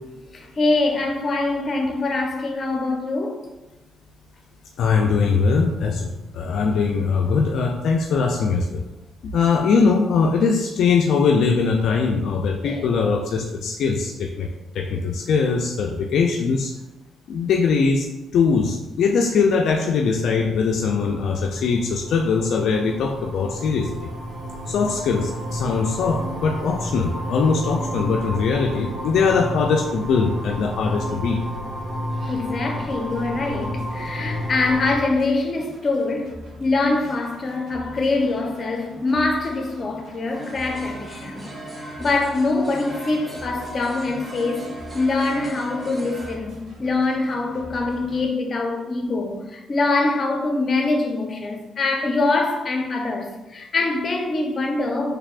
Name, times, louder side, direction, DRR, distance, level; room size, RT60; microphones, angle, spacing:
voice 1, 0.3-3.4 12.6-12.9 32.2-36.3 36.6-41.5 42.0-55.2, left 3 dB, 40° left, 0.6 m, -24 dB
voice 2, 4.8-8.8 9.2-14.5 14.7-16.7 17.3-18.1 18.3-24.1 24.7-31.4, left 5 dB, 70° left, 0.3 m, -21 dB
sound 1, 20.6-35.0, equal, 45° right, 1.3 m, -31 dB
sound 2, 32.7-48.3, left 1 dB, 65° right, 1.1 m, -43 dB
sound 3, 40.3-46.4, right 2 dB, 25° right, 0.7 m, -37 dB
3.3 x 3.3 x 2.4 m
cardioid pair, 90°, 0 cm